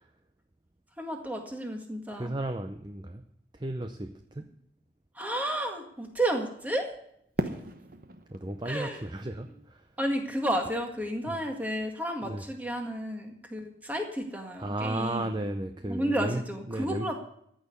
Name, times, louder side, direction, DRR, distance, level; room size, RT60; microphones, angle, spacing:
voice 1, 1.0-2.3 5.2-6.9 8.7-9.0 10.0-15.4 15.8-17.1, right 1 dB, 10° right, 2 dB, 1.8 m, -32 dB
voice 2, 2.1-3.2 3.5-4.5 8.3-9.8 11.3-11.4 12.2-12.4 14.6-16.4 16.7-17.1, right 1 dB, 25° right, 7 dB, 0.6 m, -34 dB
Fireworks, 7.4-10.4, right 1 dB, 50° right, 1.0 m, -38 dB
14.0 x 6.5 x 9.6 m, 0.72 s
head